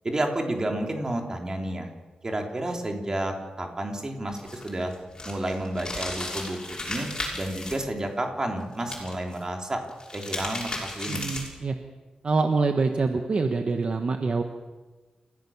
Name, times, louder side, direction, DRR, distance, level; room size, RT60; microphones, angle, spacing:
voice 1, 0.0-1.9 2.2-4.9 5.2-7.1 7.3-9.8 10.1-11.3, right 1 dB, 25° right, 2 dB, 3.3 m, -30 dB
sound 1, 4.3-7.7 8.8-9.4 9.9-11.6, left 2 dB, 30° left, 6.3 m, -35 dB
voice 2, 11.1-11.8 12.2-14.4, right 4 dB, 45° right, 5 dB, 1.3 m, -25 dB
29.5 x 16.0 x 7.2 m, 1.3 s
wide cardioid pair, 155°, 3 cm